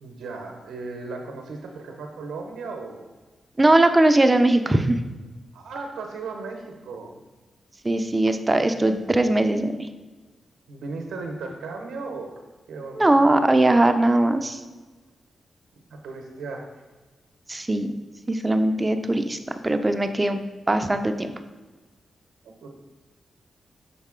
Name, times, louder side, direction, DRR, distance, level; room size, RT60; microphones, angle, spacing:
voice 1, 0.0-3.1 5.5-7.2 10.7-12.4 12.7-13.2 15.9-16.7 22.4-22.7, right 3 dB, 85° right, 3 dB, 0.7 m, -36 dB
voice 2, 3.6-5.0 7.8-9.9 13.0-14.6 17.5-17.9 18.3-19.4 19.6-20.4 20.7-21.3, right 1 dB, 25° right, 8 dB, 0.5 m, -20 dB
6.4 x 4.0 x 3.7 m, 1.3 s
cardioid pair, 55°, 0 cm